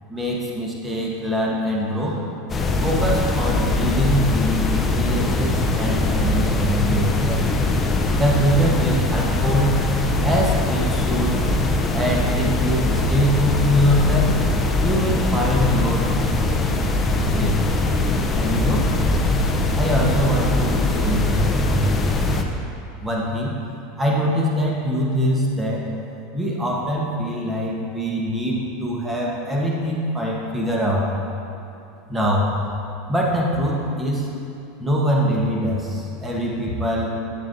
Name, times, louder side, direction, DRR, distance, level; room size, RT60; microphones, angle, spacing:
voice 1, 0.1-2.3 2.8-7.4 8.2-9.8 10.2-11.4 11.9-14.3 14.8-16.1 17.3-17.6 18.3-18.9 19.7-22.3 23.0-23.6 24.0-25.9 26.3-31.1 32.1-32.5 33.1-34.3 34.8-37.2, equal, 10° right, -3 dB, 1.1 m, -23 dB
sound 1, 2.5-22.4, left 2 dB, 20° left, 0.5 m, -21 dB
7.5 x 7.2 x 2.7 m, 2.7 s
supercardioid pair, 120°, 0 cm